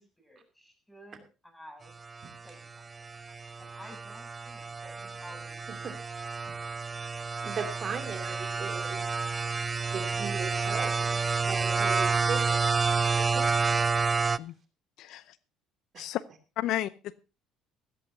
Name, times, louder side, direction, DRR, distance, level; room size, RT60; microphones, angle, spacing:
voice 1, 0.0-1.9 2.4-2.9 3.6-5.9, equal, 5° left, 5 dB, 7.2 m, -52 dB
sound 1, 2.0-14.4, right 4 dB, 25° right, 0.5 m, -29 dB
voice 2, 7.4-9.0 9.9-12.6 13.1-13.9 15.9-16.1, right 6 dB, 45° right, 6 dB, 2.8 m, -38 dB
voice 3, 15.0-15.4 16.0-16.2 16.6-17.2, left 14 dB, 70° left, 18 dB, 0.6 m, -33 dB
16.0 x 15.5 x 2.7 m, 0.30 s
supercardioid pair, 70°, 0 cm